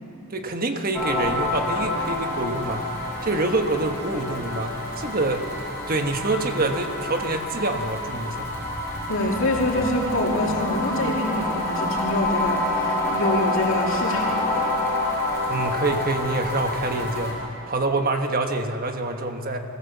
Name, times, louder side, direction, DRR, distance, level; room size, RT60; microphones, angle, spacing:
voice 1, 0.3-2.9 3.2-5.6 5.9-8.5 15.5-19.6, right 2 dB, 40° right, 5 dB, 1.3 m, -26 dB
sound 1, 0.9-17.3, left 2 dB, 10° left, 5.0 m, -27 dB
voice 2, 9.1-14.7, left 1 dB, 65° left, -1 dB, 3.0 m, -25 dB
24.5 x 15.5 x 7.3 m, 3.0 s
head